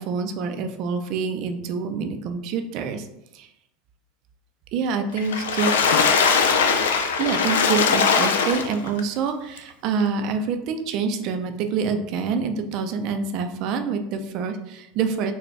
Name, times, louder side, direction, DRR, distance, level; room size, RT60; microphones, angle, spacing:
voice 1, 0.0-3.1 3.3-3.5 4.7-5.8 7.2-15.3, right 5 dB, 55° right, 7 dB, 0.5 m, -26 dB
Water / Splash splatter, 5.2-9.0 9.6-9.7 10.0-10.1, left 5 dB, 85° left, 0.4 m, -20 dB
4.1 x 2.2 x 3.2 m, 0.81 s
hypercardioid pair, 95°, 0 cm